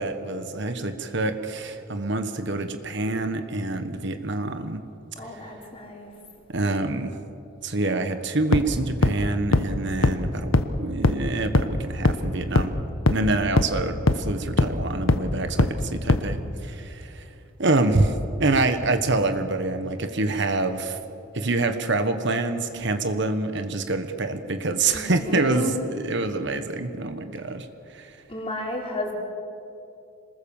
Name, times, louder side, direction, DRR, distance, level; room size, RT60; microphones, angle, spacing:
voice 1, 0.0-4.8 6.5-7.1 7.6-12.7 13.1-17.2 17.6-18.1 18.4-21.0 21.3-27.7 27.9-28.1, right 2 dB, 55° right, 8 dB, 1.3 m, -26 dB
voice 2, 5.2-6.1 24.9-25.8 28.3-29.1, left 1 dB, 25° left, 0 dB, 3.8 m, -32 dB
sound 1, 8.5-8.6 9.0-9.1 9.5-9.6 10.0-10.1 10.5-10.6 11.0-11.1 11.5-11.6 12.0-12.1 12.5-12.6 13.1-13.2 13.6-13.7 14.1-14.2 14.6-14.7 15.1-15.2 15.6-15.7 16.1-16.2, left 2 dB, 75° left, 1.1 m, -18 dB
27.0 x 20.5 x 7.2 m, 2.6 s
head